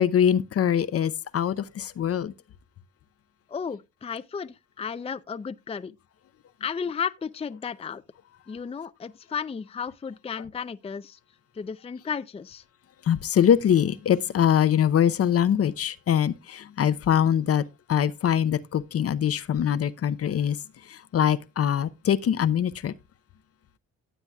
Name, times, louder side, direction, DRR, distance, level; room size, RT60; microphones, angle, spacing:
voice 1, 0.0-2.3 13.1-17.6 17.9-20.6 20.9-22.9, left 9 dB, 50° left, 0.7 m, -23 dB
voice 2, 3.5-5.9 6.6-8.0 8.5-11.2 11.5-12.6, left 6 dB, 20° left, 0.5 m, -33 dB
15.5 x 7.9 x 2.3 m
cardioid pair, 90°, 30 cm